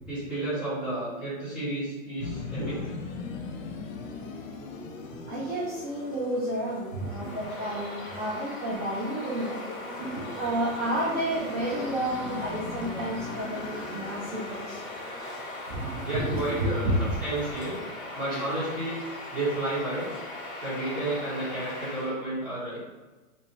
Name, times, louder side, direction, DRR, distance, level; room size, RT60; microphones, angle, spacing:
voice 1, 0.1-2.8 16.0-16.9 17.2-17.8 18.1-19.0 19.3-20.1 20.6-22.8, right 2 dB, 5° right, -12 dB, 1.2 m, -31 dB
sound 1, 2.2-17.5, left 4 dB, 70° left, 0.6 m, -41 dB
voice 2, 2.6-2.9 4.9-5.0 5.2-9.6 10.0-14.8 15.7-17.0 18.3-18.5, right 1 dB, 30° right, -8 dB, 0.5 m, -31 dB
Bird vocalization bird call bird song, 6.9-22.2, left 1 dB, 10° left, 0.6 m, -39 dB
2.8 x 2.1 x 3.0 m, 1.2 s
hypercardioid pair, 150°, 41 cm